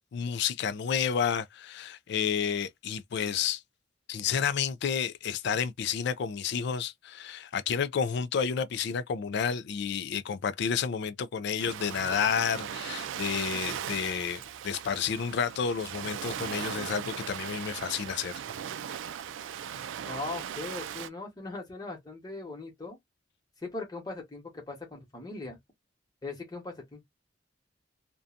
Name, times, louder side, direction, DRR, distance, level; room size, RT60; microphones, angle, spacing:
voice 1, 0.1-3.6 4.1-18.3, left 7 dB, 60° left, 0.3 m, -30 dB
Ocean, 11.6-21.1, right 9 dB, 85° right, 0.3 m, -38 dB
voice 2, 20.1-23.0 23.6-25.6 26.2-27.0, left 3 dB, 20° left, 1.0 m, -39 dB
2.5 x 2.2 x 2.5 m
head